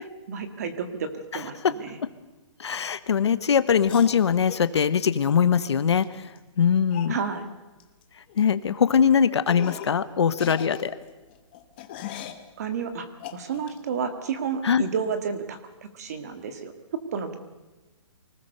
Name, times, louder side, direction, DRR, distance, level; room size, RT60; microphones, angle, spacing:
voice 1, 0.0-2.0 7.1-7.5 12.6-16.7 17.1-17.4, right 6 dB, 30° right, 9 dB, 1.9 m, -31 dB
voice 2, 2.6-6.2 6.6-7.2 8.4-10.9 14.6-14.8, left 7 dB, 55° left, 14 dB, 1.2 m, -21 dB
sound 1, 3.8-4.7 6.0-6.1 6.4-6.5 6.9-7.2 7.8-8.0 8.3-8.5 8.9-9.0 9.5-10.0 10.3-12.4 13.2-13.8, left 10 dB, 20° left, 1.1 m, -39 dB
25.0 x 19.5 x 6.7 m, 1.2 s
hypercardioid pair, 180°, 16 cm